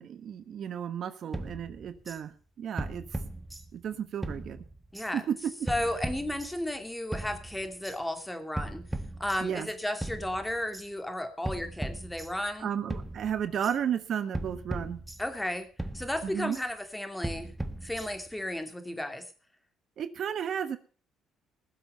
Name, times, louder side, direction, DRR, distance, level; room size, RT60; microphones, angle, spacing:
voice 1, 0.0-3.0 3.7-4.6 5.1-5.4 9.4-9.7 12.6-15.0 16.2-16.6 20.0-20.8, right 8 dB, 55° right, 12 dB, 1.2 m, -33 dB
sound 1, 1.3-2.2 2.8-3.9 4.2-5.1 5.7-6.8 7.1-8.0 8.6-9.7 10.0-10.9 11.4-12.6 12.9-13.8 14.3-15.5 15.8-16.7 17.2-18.4, right 1 dB, 10° right, 1.4 m, -38 dB
voice 2, 5.6-8.8 9.2-12.7 15.2-15.7 15.9-17.5 17.8-19.2, left 1 dB, 10° left, 7 dB, 2.6 m, -33 dB
19.5 x 7.6 x 5.5 m, 0.39 s
cardioid pair, 90°, 0 cm